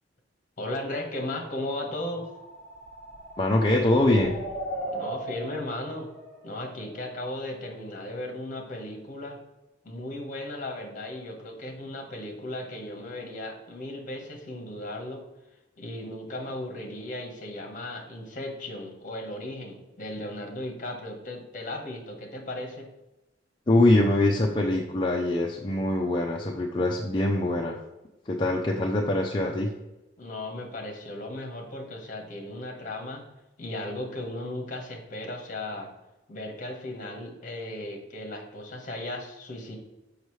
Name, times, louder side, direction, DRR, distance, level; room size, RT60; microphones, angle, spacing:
voice 1, 0.6-2.3 4.9-6.1 6.4-9.4 9.8-15.2 15.8-22.9 30.2-33.2 33.6-35.9 36.3-39.8, left 1 dB, 45° left, 2 dB, 1.4 m, -36 dB
sound 1, 1.6-7.4, right 1 dB, 10° left, 2.4 m, -39 dB
voice 2, 3.4-4.3 23.7-27.8 28.3-29.7, left 1 dB, 25° left, -1 dB, 0.6 m, -23 dB
6.6 x 5.4 x 3.2 m, 1.0 s
head